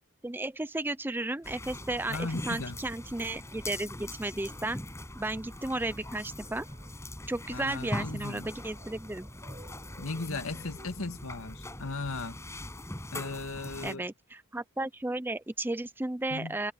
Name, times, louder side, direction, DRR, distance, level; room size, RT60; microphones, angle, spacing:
voice 1, 0.2-4.8 5.2-6.7 7.3-9.3 13.8-16.7, right 2 dB, 10° right, 0.5 m, -34 dB
sound 1, 1.4-14.0, left 1 dB, 15° left, 7.0 m, -42 dB
sound 2, 1.8-13.4, right 1 dB, 30° right, 5.5 m, -59 dB
voice 2, 2.1-2.8 7.5-8.5 10.0-12.4 13.1-14.0 16.3-16.6, left 3 dB, 80° left, 2.0 m, -37 dB
head